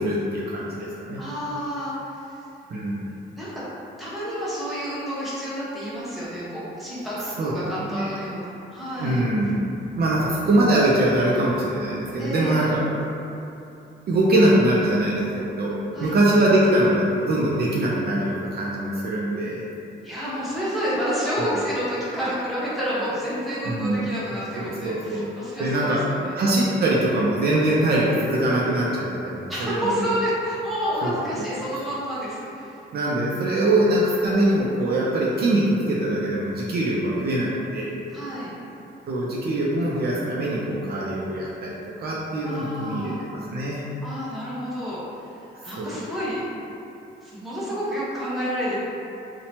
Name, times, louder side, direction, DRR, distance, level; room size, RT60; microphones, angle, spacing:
voice 1, 0.0-1.2 2.7-3.0 7.4-7.5 7.9-8.1 9.0-9.6 10.0-12.8 14.1-19.6 23.6-24.0 24.6-25.3 25.6-26.0 26.4-30.1 31.0-31.5 32.9-37.9 39.1-41.7 42.0-43.8 45.7-45.9, right 1 dB, 50° right, -5 dB, 0.4 m, -23 dB
voice 2, 1.2-2.2 3.3-3.6 4.0-9.2 12.2-12.7 15.9-16.2 20.0-26.4 29.5-32.7 38.1-38.5 42.4-43.2 44.0-46.4 47.2-48.8, equal, ahead, -10 dB, 0.9 m, -29 dB
2.8 x 2.1 x 2.8 m, 2.8 s
cardioid pair, 90°, 20 cm